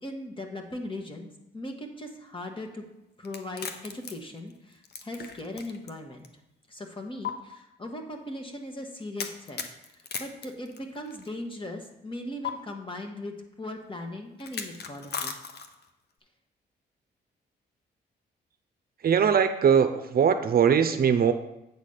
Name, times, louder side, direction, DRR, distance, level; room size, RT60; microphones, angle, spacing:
voice 1, 0.0-1.3 1.5-2.8 3.2-6.3 6.7-9.6 10.2-15.4, left 1 dB, 25° left, 3 dB, 1.4 m, -38 dB
sound 1, 3.3-5.9 6.2-6.3 7.2-7.3 9.2-11.3 12.4-12.5 14.4-15.9, left 6 dB, 60° left, 0.8 m, -37 dB
voice 2, 19.0-21.3, right 7 dB, 50° right, 8 dB, 0.6 m, -21 dB
8.3 x 4.1 x 6.5 m, 0.88 s
cardioid pair, 75°, 19 cm